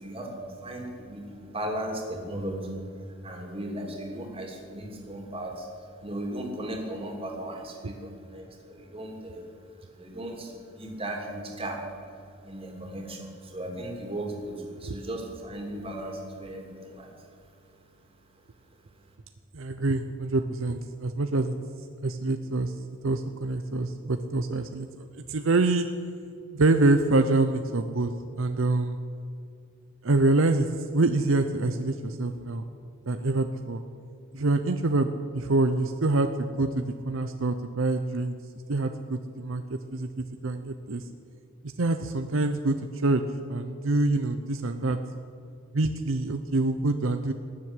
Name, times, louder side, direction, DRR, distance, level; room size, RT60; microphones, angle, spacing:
voice 1, 0.0-2.8 3.2-9.5 9.9-11.9 12.2-17.2 17.7-17.8, right 1 dB, 25° right, 1 dB, 2.8 m, -36 dB
voice 2, 19.5-21.5 22.0-22.7 23.0-25.9 26.5-29.0 30.0-32.7 33.1-33.8 34.3-35.1 35.3-38.3 38.7-41.0 41.8-42.8 43.0-43.2 43.5-45.0 45.7-47.3, right 2 dB, 70° right, 8 dB, 0.7 m, -26 dB
19.0 x 7.6 x 9.8 m, 2.5 s
head